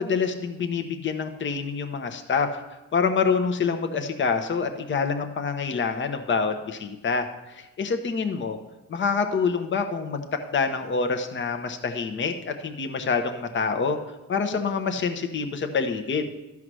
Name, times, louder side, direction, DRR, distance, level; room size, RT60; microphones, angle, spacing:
voice 1, 0.0-2.5 2.9-8.6 8.9-14.0 14.3-16.2, left 5 dB, 40° left, 6 dB, 0.9 m, -26 dB
12.5 x 4.8 x 6.2 m, 1.0 s
cardioid pair, 90°, 30 cm